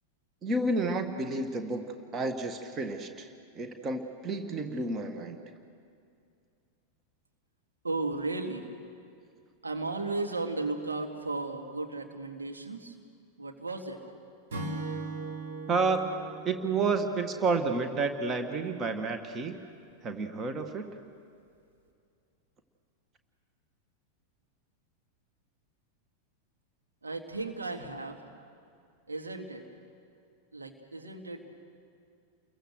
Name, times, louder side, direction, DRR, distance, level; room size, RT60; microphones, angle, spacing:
voice 1, 0.4-5.4 15.7-16.1 16.4-19.6 20.0-20.9, right 3 dB, 25° right, 7 dB, 1.7 m, -30 dB
voice 2, 7.8-8.7 9.6-13.0 13.4-14.0 27.0-28.2 29.1-29.6 30.5-31.5, right 3 dB, 75° right, 3 dB, 2.1 m, -35 dB
Acoustic guitar / Strum, 14.5-17.9, right 3 dB, 60° right, 3.5 m, -39 dB
30.0 x 22.5 x 6.5 m, 2.5 s
figure-of-eight pair, 90°, 0 cm